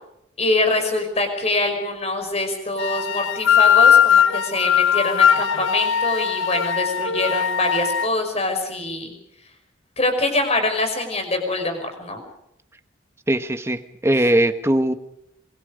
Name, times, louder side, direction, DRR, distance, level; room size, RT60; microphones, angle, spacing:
voice 1, 0.4-9.1 10.0-12.2, left 2 dB, 30° left, 6 dB, 5.5 m, -24 dB
sound 1, 2.8-8.1, left 8 dB, 80° left, 1.0 m, -19 dB
voice 2, 13.3-14.9, right 1 dB, 15° right, 8 dB, 1.3 m, -20 dB
26.5 x 23.5 x 5.2 m, 0.79 s
head